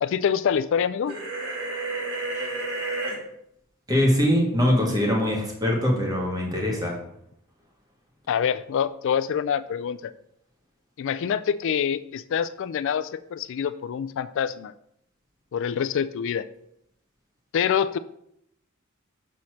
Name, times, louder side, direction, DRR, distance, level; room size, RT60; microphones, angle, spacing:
voice 1, 0.0-1.2 8.3-10.1 11.0-14.7 15.5-16.5 17.5-18.0, left 8 dB, 65° left, 13 dB, 0.3 m, -26 dB
sound 1, 1.1-3.2, right 2 dB, 90° right, 2.3 m, -30 dB
voice 2, 3.9-7.0, equal, 20° right, -1 dB, 1.8 m, -22 dB
6.2 x 4.2 x 6.3 m, 0.76 s
head